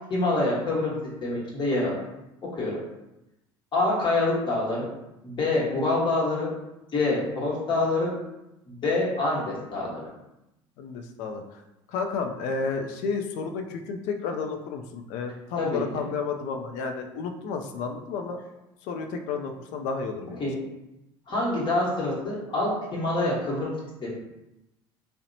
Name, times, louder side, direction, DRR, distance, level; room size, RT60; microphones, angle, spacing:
voice 1, 0.1-0.9 1.2-1.9 2.5-2.8 3.7-4.9 5.2-6.5 6.9-8.1 8.7-10.0 15.6-15.8 20.4-20.5 21.3-23.7 24.0-24.1, left 2 dB, 40° left, -5 dB, 1.1 m, -26 dB
voice 2, 10.8-11.6 11.9-18.4 18.9-20.4, left 5 dB, 70° left, 5 dB, 0.4 m, -31 dB
2.7 x 2.1 x 2.6 m, 0.91 s
hypercardioid pair, 75°, 13 cm